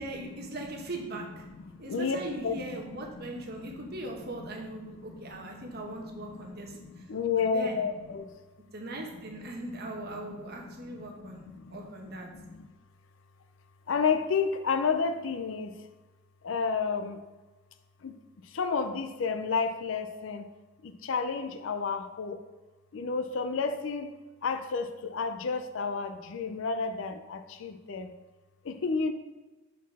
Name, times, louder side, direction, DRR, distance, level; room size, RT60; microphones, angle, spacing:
voice 1, 0.0-1.4 1.8-7.1 7.3-7.8 8.7-11.4 11.7-12.3, right 1 dB, 50° right, 1 dB, 1.0 m, -40 dB
voice 2, 1.5-2.5 3.2-3.8 4.5-5.9 6.3-8.3 10.3-12.7 13.9-15.7 16.4-17.2 18.0-18.1 18.5-20.5 20.8-22.4 22.9-24.1 24.4-28.1 28.6-29.1, left 5 dB, 60° left, 8 dB, 0.5 m, -32 dB
6.3 x 4.2 x 4.1 m, 1.2 s
head